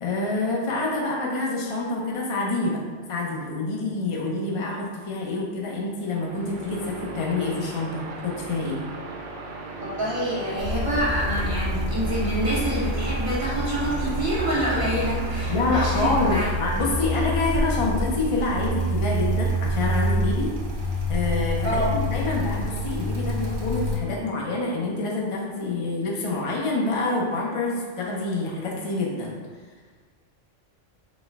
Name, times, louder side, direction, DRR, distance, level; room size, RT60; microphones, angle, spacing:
voice 1, 0.0-2.8 3.1-8.8 15.5-20.5 21.1-29.3, left 2 dB, 35° left, -3 dB, 0.6 m, -27 dB
sound 1, 6.0-17.6, right 2 dB, 75° right, 1.0 m, -38 dB
voice 2, 9.8-16.5 21.6-21.9, right 1 dB, 25° right, -9 dB, 1.2 m, -26 dB
sound 2, 10.6-24.0, equal, 50° right, 0.7 m, -27 dB
4.2 x 2.3 x 4.5 m, 1.4 s
omnidirectional pair, 1.3 m